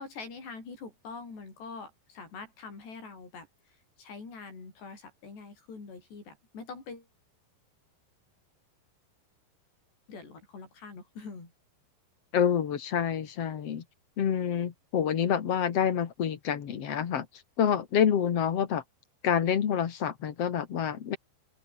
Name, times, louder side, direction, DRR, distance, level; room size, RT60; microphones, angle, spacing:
voice 1, 0.0-7.1 10.1-11.5, left 4 dB, 75° left, 10.0 m, -44 dB
voice 2, 12.3-13.8 14.2-17.3 17.6-18.8 19.2-21.2, left 8 dB, 50° left, 2.2 m, -27 dB
open air
omnidirectional pair, 4.9 m